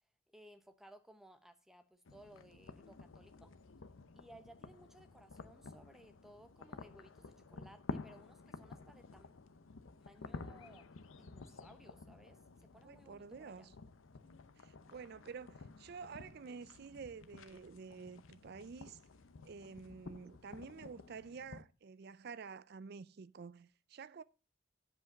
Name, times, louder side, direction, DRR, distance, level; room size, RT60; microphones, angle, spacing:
voice 1, 0.3-3.5 4.1-9.3 10.0-13.7, right 1 dB, ahead, 0.8 m, -60 dB
sound 1, 2.1-21.6, left 3 dB, 80° left, 0.7 m, -52 dB
voice 2, 12.8-13.7 14.6-19.0 19.4-24.2, right 5 dB, 50° right, 0.4 m, -50 dB
8.1 x 5.1 x 7.1 m
head